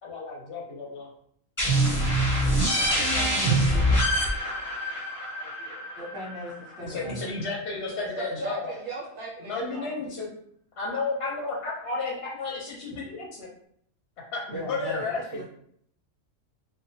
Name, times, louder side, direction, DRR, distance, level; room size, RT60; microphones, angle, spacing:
voice 1, 0.0-1.1 6.8-8.7 9.4-10.3 10.8-13.5 14.3-15.4, left 3 dB, 60° left, -3 dB, 0.7 m, -32 dB
sound 1, 1.6-7.0, right 1 dB, 15° left, 0.7 m, -25 dB
voice 2, 2.3-4.0 7.8-10.1 14.8-15.5, right 3 dB, 65° right, -3 dB, 0.8 m, -41 dB
voice 3, 2.9-4.0 5.4-7.2 14.5-15.1, equal, 5° right, -8 dB, 1.1 m, -39 dB
2.8 x 2.1 x 2.7 m, 0.65 s
omnidirectional pair, 1.4 m